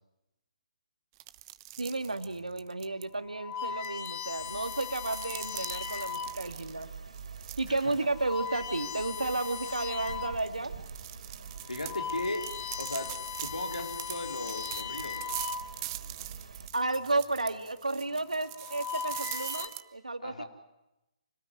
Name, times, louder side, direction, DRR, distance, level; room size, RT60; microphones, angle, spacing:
sound 1, 1.2-3.0 3.8-8.0 8.3-8.5 9.0-9.1 9.6-19.8, right 17 dB, 30° right, 1.0 m, -43 dB
voice 1, 1.8-6.9 7.6-10.7 16.7-20.4, right 2 dB, 85° right, 9 dB, 2.2 m, -32 dB
sound 2, 2.3-2.6 3.2-6.6 7.3-7.5 8.0-10.5 11.0-11.1 11.6-16.1 17.1-17.5 18.3-19.7, left 7 dB, 25° left, 1.5 m, -39 dB
sound 3, 4.4-16.7, right 5 dB, 65° right, 3.1 m, -47 dB
voice 2, 11.7-12.5 12.8-15.3 20.2-20.4, left 2 dB, 85° left, 5 dB, 4.0 m, -37 dB
26.0 x 19.0 x 9.9 m, 0.93 s
figure-of-eight pair, 135°, 4 cm